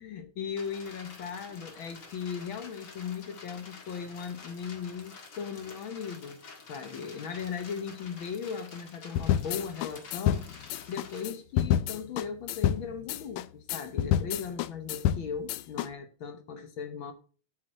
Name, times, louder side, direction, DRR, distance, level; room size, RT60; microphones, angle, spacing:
voice 1, 0.0-6.4 6.7-10.5 10.9-17.1, left 6 dB, 60° left, 1.4 m, -38 dB
sound 1, 0.6-11.3, left 4 dB, 40° left, 2.2 m, -49 dB
sound 2, 9.2-15.9, left 11 dB, 80° left, 1.8 m, -29 dB
8.4 x 6.6 x 7.4 m
omnidirectional pair, 3.4 m